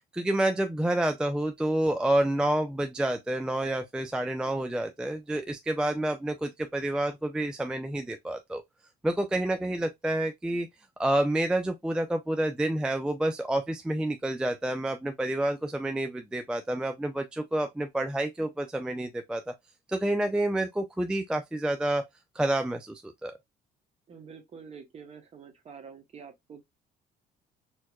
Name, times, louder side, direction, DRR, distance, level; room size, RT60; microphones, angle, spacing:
voice 1, 0.1-8.6 9.0-10.7 11.0-19.4 19.9-22.0 22.4-23.4, right 1 dB, 5° right, 0.3 m, -28 dB
voice 2, 24.1-26.6, right 6 dB, 40° right, 1.0 m, -47 dB
4.5 x 2.1 x 2.3 m
cardioid pair, 110°, 17 cm